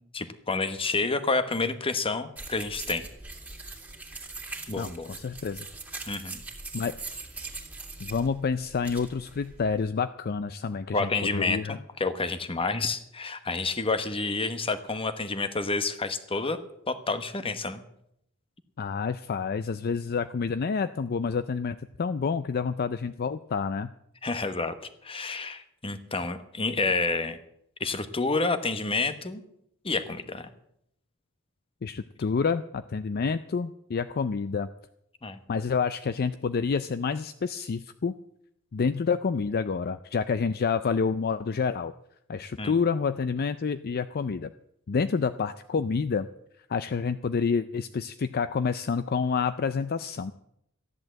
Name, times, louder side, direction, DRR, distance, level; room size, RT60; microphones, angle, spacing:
voice 1, 0.0-3.1 4.7-5.1 6.1-6.4 10.9-16.6 16.9-17.8 24.2-24.7 25.0-27.4 27.8-29.4 29.8-30.5 35.2-35.4 42.6-42.7, left 3 dB, 25° left, 9 dB, 1.1 m, -29 dB
sound 1, 2.4-9.9, right 3 dB, 10° right, 2.6 m, -41 dB
voice 2, 4.8-5.6 6.7-7.0 8.0-11.8 18.8-23.9 31.8-34.7 35.5-38.2 38.7-41.9 42.3-44.5 44.9-46.3 46.7-50.3, left 5 dB, 45° left, 12 dB, 0.4 m, -28 dB
14.0 x 10.5 x 7.6 m, 0.75 s
head